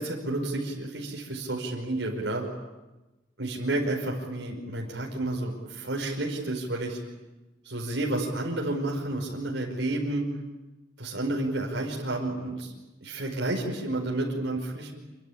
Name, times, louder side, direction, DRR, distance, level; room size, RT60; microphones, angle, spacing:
voice 1, 0.0-2.4 3.4-7.0 7.6-10.2 11.0-12.7 13.0-14.9, right 2 dB, 80° right, -1 dB, 5.3 m, -30 dB
27.0 x 25.0 x 8.8 m, 1.1 s
head